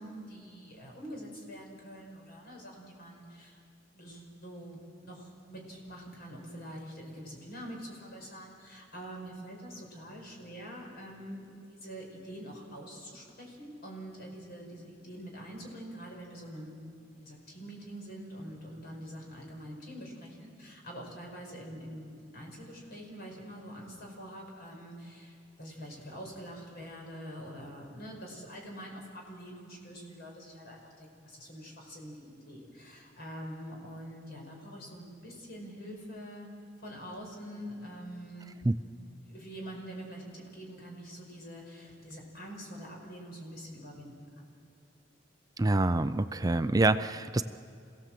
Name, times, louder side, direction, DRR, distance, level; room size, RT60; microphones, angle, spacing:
voice 1, 0.0-3.6 3.9-16.8 17.2-36.5 36.8-38.6 39.3-44.5, equal, 55° left, 0 dB, 5.4 m, -45 dB
voice 2, 45.6-47.4, right 2 dB, 20° right, 11 dB, 0.4 m, -26 dB
27.0 x 16.5 x 7.6 m, 2.5 s
head